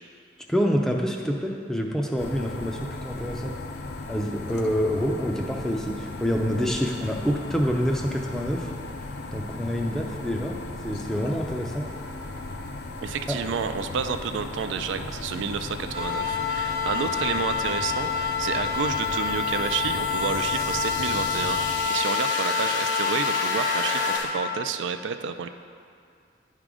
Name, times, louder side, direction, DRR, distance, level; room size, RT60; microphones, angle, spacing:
voice 1, 0.5-3.6 4.1-8.7 9.3-10.6 10.8-11.9 13.3-13.4, equal, 5° left, 1 dB, 0.4 m, -27 dB
sound 1, 2.2-21.8, left 2 dB, 60° left, 0.5 m, -36 dB
voice 2, 13.0-25.5, right 6 dB, 80° right, 8 dB, 0.3 m, -30 dB
sound 2, 15.9-24.2, left 6 dB, 30° right, 0.7 m, -27 dB
sound 3, 18.8-24.3, left 2 dB, 85° left, 0.8 m, -33 dB
9.4 x 3.7 x 4.8 m, 2.2 s
head